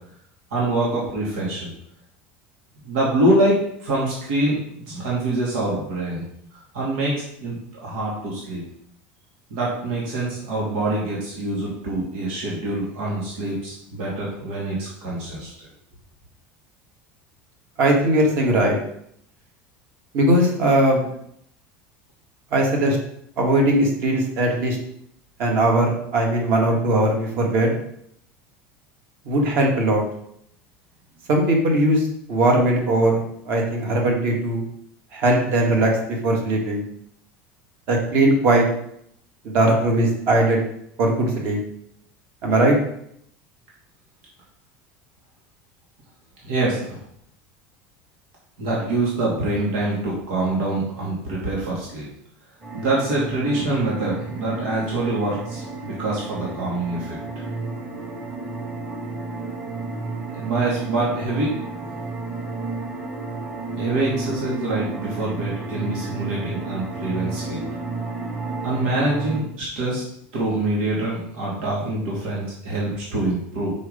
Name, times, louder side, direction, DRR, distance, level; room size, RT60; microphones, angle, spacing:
voice 1, 0.5-1.7 2.8-6.2 6.5-8.6 9.5-15.5 46.4-47.0 48.6-52.0 52.7-57.2 60.3-61.8 63.8-67.6 68.6-70.0 70.3-73.7, right 2 dB, 90° right, -5 dB, 2.7 m, -25 dB
voice 2, 17.8-18.8 20.1-21.1 22.5-23.0 23.4-24.8 25.4-27.7 29.3-30.0 31.3-34.6 35.1-35.9 36.2-36.8 37.9-38.7 39.4-40.7 41.0-41.6 42.4-42.8, right 1 dB, 40° right, 1 dB, 1.8 m, -19 dB
sound 1, 52.6-69.4, right 3 dB, 20° right, 1.5 m, -32 dB
6.2 x 5.6 x 5.1 m, 0.71 s
cardioid pair, 175°, 6 cm